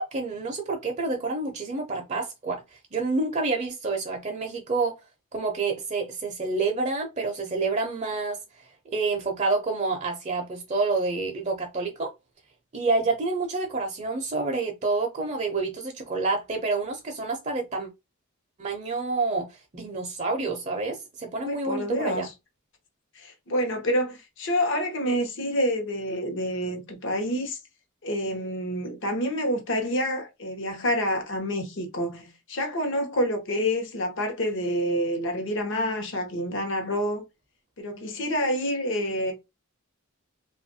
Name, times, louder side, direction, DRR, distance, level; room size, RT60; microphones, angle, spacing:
voice 1, 0.0-4.9 5.3-8.4 8.9-12.1 12.7-17.9 18.6-22.3, right 3 dB, 35° right, 0.5 m, -28 dB
voice 2, 21.4-22.3 23.1-27.6 28.0-37.2 37.8-39.3, equal, 60° left, 0.8 m, -28 dB
3.0 x 2.4 x 2.6 m
head